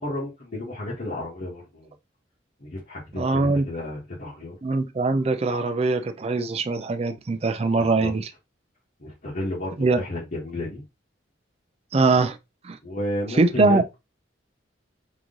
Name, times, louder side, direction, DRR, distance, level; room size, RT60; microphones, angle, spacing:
voice 1, 0.0-1.9 2.6-4.6 7.8-8.1 9.0-10.8 12.8-13.8, left 1 dB, 50° left, 1.4 m, -32 dB
voice 2, 3.2-3.6 4.6-8.3 9.8-10.0 11.9-12.4 12.6-12.8 13.3-13.8, right 3 dB, 35° right, 0.4 m, -22 dB
3.7 x 3.1 x 3.8 m
head